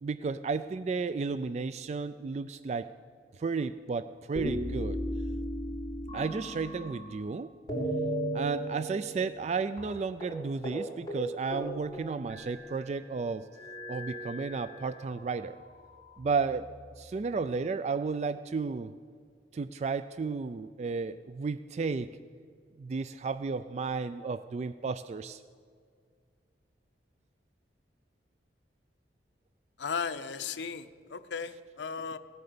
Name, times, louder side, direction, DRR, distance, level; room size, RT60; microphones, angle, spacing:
voice 1, 0.0-2.9 3.3-5.0 6.1-7.5 8.3-13.5 13.9-15.6 16.2-18.9 19.5-22.1 22.8-25.4, right 4 dB, 40° right, 13 dB, 0.3 m, -33 dB
sound 1, 4.3-7.3 7.7-9.5 9.8-9.9 10.2-10.4 10.6-10.8 11.1-12.8 13.5-15.1 15.8-16.8, equal, 20° left, 4.4 m, -36 dB
voice 2, 29.8-32.2, left 5 dB, 85° left, 10 dB, 0.6 m, -36 dB
16.5 x 9.5 x 6.8 m, 2.1 s
head